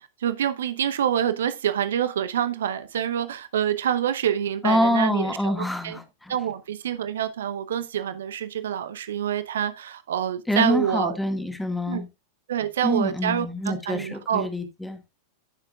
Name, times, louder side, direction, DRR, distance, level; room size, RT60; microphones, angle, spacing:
voice 1, 0.2-6.0 6.3-11.2 11.9-12.0 12.5-14.5, right 9 dB, 60° right, 0.9 m, -26 dB
voice 2, 4.6-6.3 10.5-12.1 12.8-15.0, left 1 dB, 5° left, 1.9 m, -26 dB
16.0 x 6.7 x 2.4 m
figure-of-eight pair, 90°, 0 cm